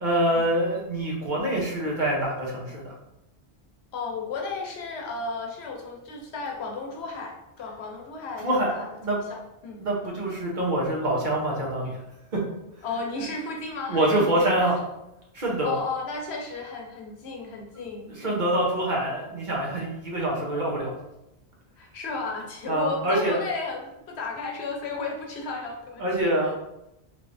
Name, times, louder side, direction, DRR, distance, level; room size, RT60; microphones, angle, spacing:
voice 1, 0.0-2.9 8.4-8.7 9.0-9.2 9.8-12.0 12.3-12.4 13.9-14.8 15.3-15.8 18.2-20.9 22.7-23.4 26.0-26.6, right 1 dB, 50° right, -3 dB, 0.9 m, -25 dB
voice 2, 3.9-9.8 12.8-14.7 15.4-18.5 21.8-26.5, left 3 dB, 75° left, 1 dB, 0.9 m, -34 dB
3.2 x 3.1 x 2.5 m, 0.88 s
omnidirectional pair, 1.1 m